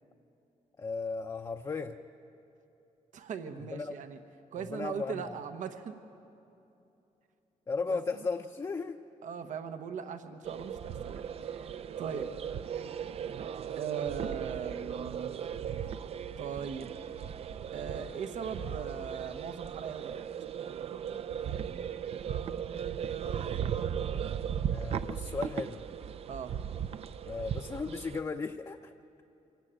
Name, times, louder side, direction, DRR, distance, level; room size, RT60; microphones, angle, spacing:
voice 1, 0.8-2.0 3.7-4.0 4.6-5.4 7.7-9.0 12.1-12.2 24.7-25.8 27.3-28.9, left 4 dB, 25° left, 4 dB, 0.6 m, -36 dB
voice 2, 3.1-4.2 4.5-6.0 7.9-8.0 9.2-12.3 13.7-15.4 16.4-16.9 17.7-20.2 26.3-26.5, right 7 dB, 80° right, 8 dB, 1.1 m, -39 dB
sound 1, 10.4-28.2, right 8 dB, 50° right, 0.5 m, -37 dB
25.0 x 16.5 x 8.9 m, 2.9 s
wide cardioid pair, 160°, 13 cm